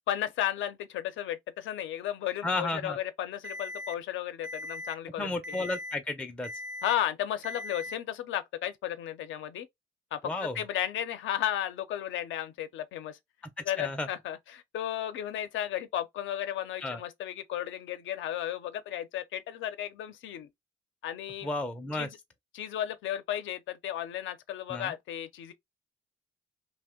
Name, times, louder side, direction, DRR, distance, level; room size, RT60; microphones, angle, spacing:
voice 1, 0.0-5.6 6.8-9.7 10.1-13.2 13.7-20.5 21.0-21.5 21.9-22.1 22.5-25.5, left 11 dB, 75° left, 0.5 m, -34 dB
voice 2, 2.4-3.0 5.2-6.5 10.2-10.6 13.4-14.1 16.8-17.0 21.4-22.1 24.7-24.9, left 2 dB, 5° left, 0.4 m, -33 dB
Alarm, 3.4-3.9 4.4-4.9 5.4-5.9 6.4-6.9 7.4-7.9, left 2 dB, 60° right, 0.5 m, -39 dB
2.7 x 2.1 x 3.5 m
cardioid pair, 90°, 20 cm